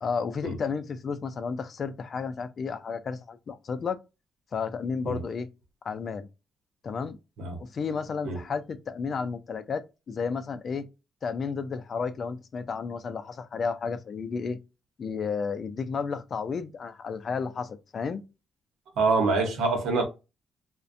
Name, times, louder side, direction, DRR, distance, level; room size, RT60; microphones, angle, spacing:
voice 1, 0.0-4.0 4.5-5.5 5.8-6.3 6.8-7.2 7.6-10.9 11.2-14.6 15.0-18.2, left 5 dB, 45° left, 0.4 m, -32 dB
voice 2, 19.0-20.0, right 3 dB, 85° right, 0.8 m, -25 dB
2.5 x 2.1 x 2.5 m
cardioid pair, 105°, 0 cm